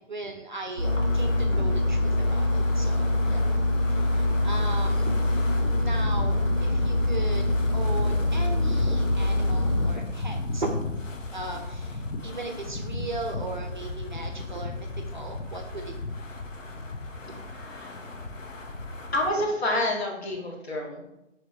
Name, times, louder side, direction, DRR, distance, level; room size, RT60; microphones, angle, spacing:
voice 1, 0.0-3.5 3.9-10.7 11.3-16.4 16.7-16.8 17.3-17.4 19.1-19.2, right 2 dB, 40° right, 3 dB, 0.5 m, -38 dB
Wind, 0.8-19.3, left 2 dB, 85° left, 0.8 m, -36 dB
Engine, 0.8-9.9, left 1 dB, 25° left, 0.5 m, -24 dB
voice 2, 17.6-17.9 19.1-21.0, left 1 dB, 55° left, 0 dB, 1.2 m, -28 dB
3.5 x 3.0 x 4.5 m, 0.93 s
figure-of-eight pair, 150°, 38 cm